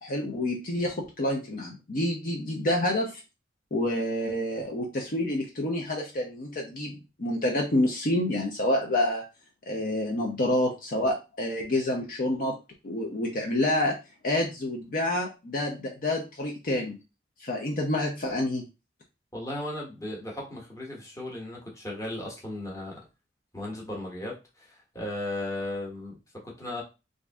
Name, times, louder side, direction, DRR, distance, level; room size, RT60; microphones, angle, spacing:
voice 1, 0.0-3.2 3.7-9.2 9.7-12.5 12.8-14.0 14.2-17.0 17.4-18.6, left 1 dB, 50° left, 0 dB, 0.7 m, -28 dB
voice 2, 19.3-23.0 23.5-26.2 26.6-26.8, left 1 dB, 20° left, -2 dB, 1.2 m, -36 dB
3.6 x 2.6 x 3.5 m, 0.28 s
head